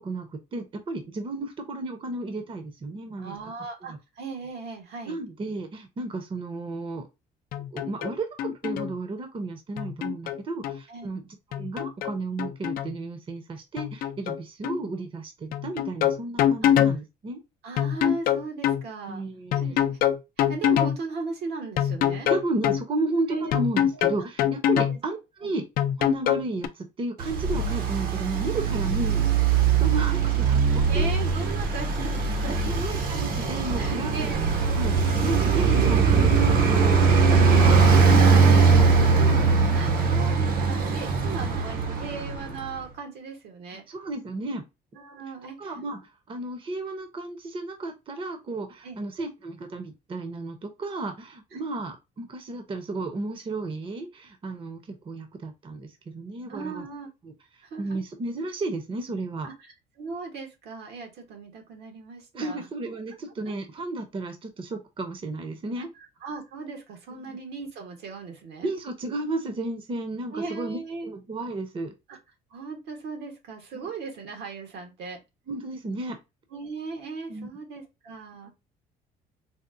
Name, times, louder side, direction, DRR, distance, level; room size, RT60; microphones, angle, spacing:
voice 1, 0.0-3.4 3.8-4.0 5.1-7.1 7.7-17.4 19.1-19.8 22.3-25.6 26.0-31.1 32.7-34.3 34.7-39.8 43.9-44.6 45.6-56.9 57.2-59.5 62.3-65.9 67.1-67.4 68.6-71.9 73.7-73.9 75.5-76.2 77.3-77.5, right 2 dB, 30° right, 6 dB, 0.7 m, -33 dB
voice 2, 3.2-5.2 10.9-11.1 16.6-16.7 17.6-19.2 19.6-20.0 20.4-22.3 23.3-23.5 23.9-24.0 24.8-25.0 25.4-25.5 30.7-32.7 33.8-34.4 37.6-37.8 39.6-43.8 44.9-45.7 48.8-49.0 51.5-51.6 56.5-57.1 57.6-58.0 59.4-62.7 63.1-63.2 66.2-68.7 70.3-71.1 72.1-72.2 72.5-75.2 76.5-78.5, right 4 dB, 80° right, 3 dB, 1.2 m, -37 dB
sound 1, 7.5-8.1 8.4-8.9 9.8-10.8 11.5-12.9 13.8-14.4 14.6-14.8 15.5-17.0 17.8-18.8 19.5-21.0 21.8-22.8 23.5-25.0 25.8-26.7, left 10 dB, 60° left, 0.4 m, -24 dB
Traffic noise roadway noise, 27.2-42.7, right 5 dB, 60° right, 0.8 m, -21 dB
4.1 x 2.1 x 2.5 m, 0.24 s
cardioid pair, 110°, 17 cm